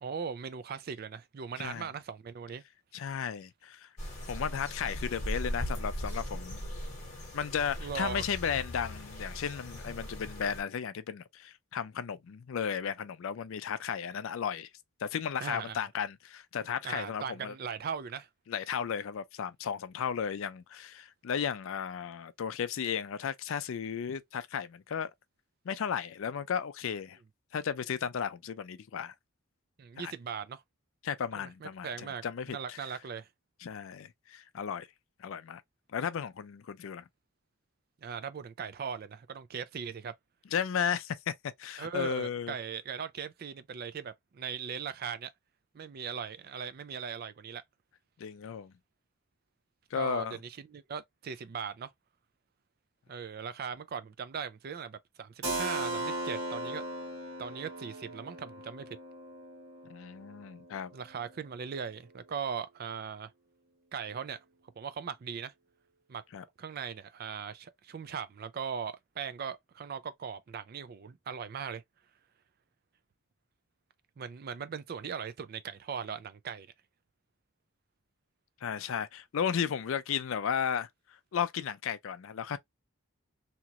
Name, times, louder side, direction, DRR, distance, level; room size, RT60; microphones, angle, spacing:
voice 1, 0.0-2.6 7.8-8.2 15.4-15.8 16.8-18.3 29.8-30.6 31.4-33.3 38.0-40.1 41.8-45.3 45.7-47.6 50.0-51.9 53.1-56.8 57.4-59.0 60.9-63.3 63.9-64.4 64.8-65.5 66.1-66.2 66.6-71.8 74.2-76.7, right 6 dB, 45° right, 0.3 m, -39 dB
voice 2, 1.6-1.9 2.9-3.9 4.3-6.6 7.3-14.7 15.0-17.5 18.5-25.1 25.7-27.2 27.5-29.1 30.0-30.1 31.0-32.8 33.6-34.9 35.2-35.6 35.9-37.0 40.5-41.3 41.6-42.5 48.2-48.7 49.9-50.4 59.9-60.9 66.3-66.4 78.6-82.6, left 7 dB, 65° left, 0.4 m, -34 dB
sound 1, 4.0-10.6, equal, 30° left, 1.2 m, -39 dB
Keyboard (musical), 55.4-61.0, right 1 dB, 70° right, 1.5 m, -38 dB
2.9 x 2.4 x 2.8 m
head